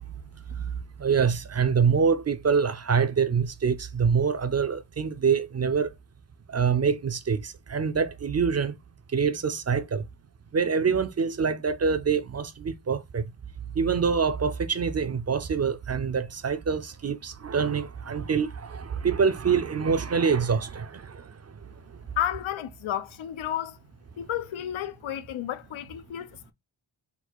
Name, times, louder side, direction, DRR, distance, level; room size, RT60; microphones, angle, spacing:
voice 1, 1.0-5.9 6.5-8.7 9.1-10.0 10.5-13.2 13.8-21.2, right 6 dB, 35° right, 0.4 m, -25 dB
voice 2, 22.2-23.8 24.2-26.5, left 11 dB, 85° left, 0.7 m, -32 dB
4.0 x 2.3 x 4.3 m
wide cardioid pair, 125°, 46 cm